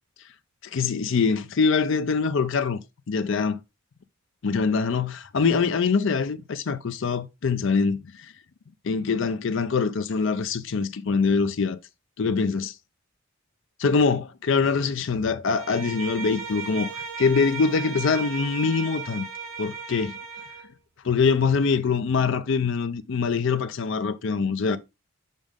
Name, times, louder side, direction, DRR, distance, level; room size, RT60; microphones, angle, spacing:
voice 1, 0.7-2.8 3.1-3.6 4.4-8.3 8.8-11.8 12.2-12.7 13.8-16.9 17.2-19.2 19.6-20.1 21.0-24.8, left 5 dB, 65° left, 0.5 m, -24 dB
Bowed string instrument, 15.5-20.7, right 5 dB, 80° right, 1.2 m, -36 dB
5.4 x 5.2 x 3.6 m
head